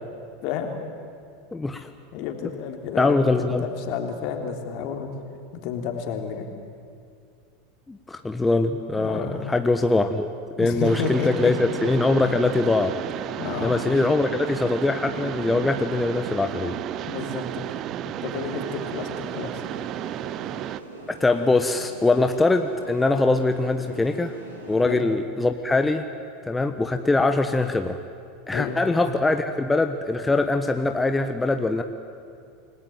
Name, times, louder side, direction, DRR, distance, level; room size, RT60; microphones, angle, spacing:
voice 1, 1.5-1.9 3.0-3.7 7.9-10.3 10.6-12.9 13.6-16.7 21.2-24.3 24.7-26.1 26.5-28.0 28.5-31.8, left 2 dB, 10° left, 7 dB, 1.3 m, -22 dB
voice 2, 2.1-5.1 5.5-6.5 9.0-9.4 10.6-11.5 13.4-13.8 17.0-17.7 18.0-19.6 24.8-25.0 28.5-29.1, left 7 dB, 55° left, 4 dB, 3.4 m, -31 dB
Mechanisms, 10.8-20.8, right 12 dB, 45° right, 0.8 m, -33 dB
sound 1, 18.3-24.9, right 1 dB, 90° right, 4.6 m, -42 dB
28.5 x 19.5 x 9.2 m, 2.3 s
hypercardioid pair, 85°, 0 cm